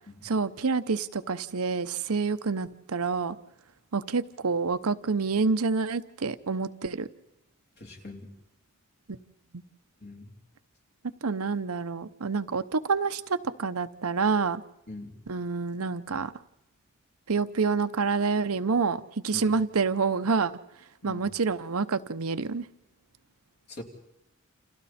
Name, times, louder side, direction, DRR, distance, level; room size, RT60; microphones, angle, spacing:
voice 1, 0.2-3.4 3.9-7.1 9.1-9.2 11.2-14.6 15.3-16.3 17.3-20.5 21.0-22.7, right 4 dB, 80° right, 11 dB, 0.8 m, -28 dB
voice 2, 7.8-8.3 10.0-10.3 14.9-15.1 19.3-19.5 21.0-21.3 23.7-23.8, left 2 dB, 50° left, 2 dB, 3.2 m, -42 dB
29.5 x 27.5 x 4.3 m, 0.86 s
head